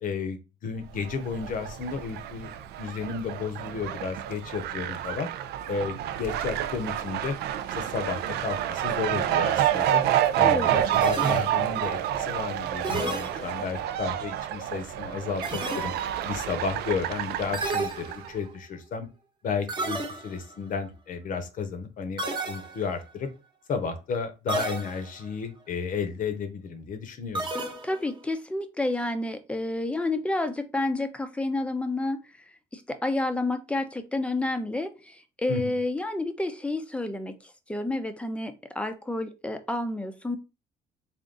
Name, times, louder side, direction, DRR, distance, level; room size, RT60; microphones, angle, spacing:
voice 1, 0.0-2.5 2.8-5.3 5.7-7.4 7.7-10.0 10.4-15.9 16.2-19.1 19.4-20.0 20.2-23.3 23.7-27.5 35.5-35.7, left 5 dB, 55° left, 9 dB, 0.8 m, -33 dB
Fowl, 0.9-18.3, right 11 dB, 75° right, 0.4 m, -29 dB
voice 2, 10.4-10.8 27.8-32.2 32.7-40.4, left 2 dB, 5° left, 9 dB, 0.5 m, -30 dB
sound 1, 11.0-11.9 12.8-13.9 15.4-16.3 17.5-18.5 19.7-20.5 22.2-23.1 24.5-25.3 27.4-28.2, right 2 dB, 25° right, 1.0 m, -32 dB
3.6 x 2.5 x 3.8 m, 0.29 s
cardioid pair, 110°, 17 cm